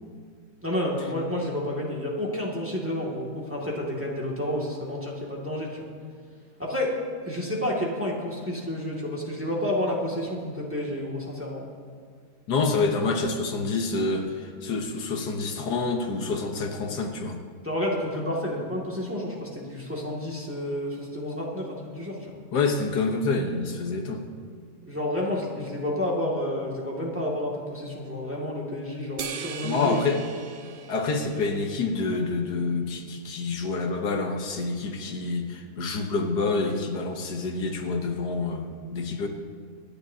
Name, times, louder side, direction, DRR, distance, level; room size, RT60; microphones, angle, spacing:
voice 1, 0.6-5.9 6.6-6.9 7.2-11.7 17.6-22.4 24.8-30.1, left 1 dB, 10° right, -4 dB, 2.2 m, -30 dB
voice 2, 12.5-17.4 22.5-24.2 29.6-30.2 30.9-39.3, left 3 dB, 85° left, 3 dB, 1.8 m, -27 dB
sound 1, 29.2-31.9, right 6 dB, 55° right, 0.6 m, -39 dB
26.0 x 10.5 x 2.8 m, 2.1 s
omnidirectional pair, 1.7 m